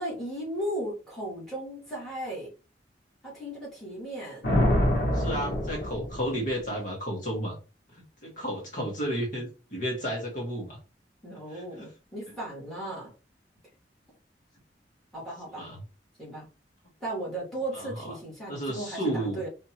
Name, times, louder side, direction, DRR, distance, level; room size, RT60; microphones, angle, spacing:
voice 1, 0.0-2.5 3.2-4.4 11.2-13.1 15.1-15.7 16.2-16.5 17.0-19.5, right 1 dB, ahead, -5 dB, 2.7 m, -36 dB
Thunder, 4.4-6.6, left 1 dB, 70° left, 1.6 m, -26 dB
voice 2, 5.1-7.5 8.2-10.8 11.5-11.9 15.6-15.8 17.7-18.1 18.5-19.4, right 1 dB, 45° left, -2 dB, 1.6 m, -32 dB
4.4 x 3.6 x 3.0 m, 0.32 s
head